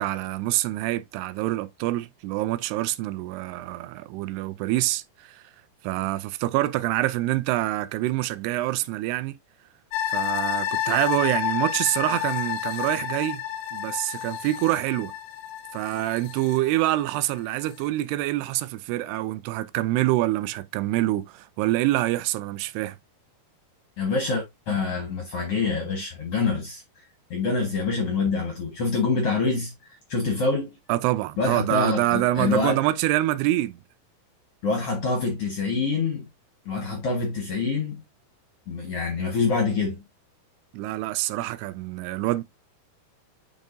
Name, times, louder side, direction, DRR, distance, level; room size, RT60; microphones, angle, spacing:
voice 1, 0.0-5.4 5.8-9.3 10.1-13.4 13.7-15.1 15.7-23.0 30.9-33.8 40.7-42.4, right 16 dB, 85° right, 2.6 m, -26 dB
sound 1, 9.9-17.2 17.6-17.7, left 10 dB, 90° left, 2.8 m, -30 dB
voice 2, 24.0-26.8 27.3-30.8 31.4-32.9 34.6-36.3 36.7-38.0 38.7-40.0, left 4 dB, 55° left, 1.8 m, -26 dB
7.4 x 5.3 x 2.6 m
omnidirectional pair, 4.7 m